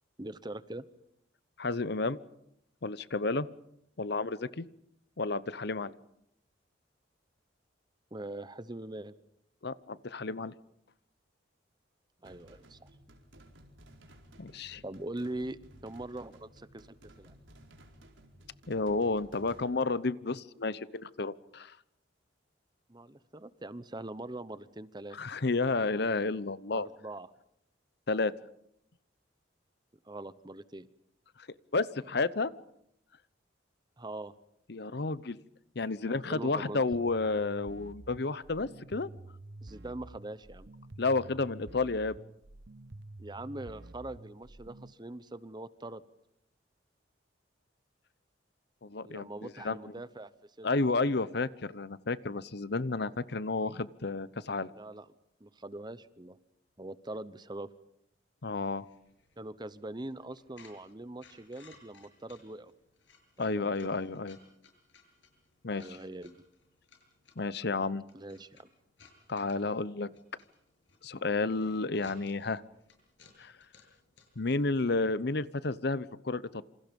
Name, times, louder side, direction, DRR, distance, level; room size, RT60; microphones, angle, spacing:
voice 1, 0.2-0.9 8.1-9.1 12.2-12.9 14.8-17.4 22.9-25.2 26.7-27.3 30.0-30.9 34.0-34.3 36.1-36.8 39.6-40.7 43.2-46.0 49.0-50.3 50.6-50.7 54.7-55.1 55.4-56.4 56.8-57.7 59.4-62.7 63.4-63.9 65.7-66.4 68.1-68.7, right 2 dB, 25° right, 15 dB, 0.9 m, -42 dB
voice 2, 1.6-2.2 2.8-3.5 4.0-4.6 5.2-5.9 9.6-10.5 14.4-14.8 18.7-21.7 25.1-26.9 28.1-28.3 31.7-32.5 34.7-35.4 35.8-39.1 41.0-42.2 48.8-49.8 50.6-54.7 58.4-58.8 63.4-64.4 65.6-66.0 67.4-68.0 69.3-70.1 71.0-72.6 73.4-73.5 74.4-76.6, left 3 dB, 60° left, 17 dB, 0.9 m, -31 dB
sound 1, 12.2-19.6, right 1 dB, 85° right, 4.5 m, -56 dB
sound 2, 36.9-44.9, right 2 dB, 65° right, 1.1 m, -49 dB
sound 3, 58.4-74.6, left 4 dB, 75° left, 7.5 m, -62 dB
27.5 x 27.0 x 5.4 m, 0.77 s
head